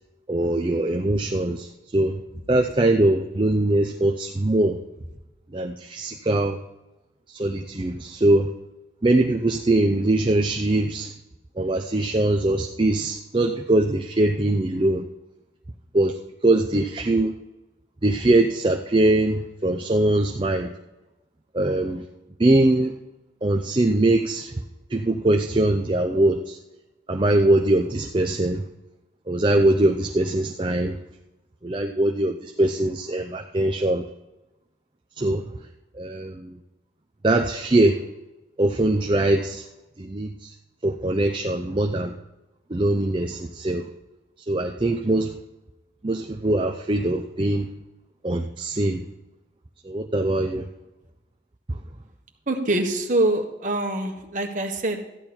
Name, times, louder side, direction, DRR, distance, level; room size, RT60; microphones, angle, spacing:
voice 1, 0.3-2.2 2.5-4.8 5.5-6.6 7.3-8.5 9.0-11.1 11.6-15.1 15.9-16.1 16.4-17.4 18.0-20.7 21.5-22.0 22.4-22.9 23.4-24.5 24.9-26.6 27.1-28.6 29.3-31.0 31.6-34.1 35.2-35.4 35.9-36.6 37.2-38.0 38.6-39.7 40.0-40.5 40.8-42.2 42.7-43.9 44.5-45.4 46.0-47.7 48.2-49.0 49.8-50.7 51.7-51.8, right 1 dB, 25° right, 4 dB, 0.6 m, -22 dB
voice 2, 52.5-55.1, right 2 dB, 45° right, 3 dB, 1.6 m, -24 dB
14.0 x 10.5 x 4.4 m, 0.98 s
head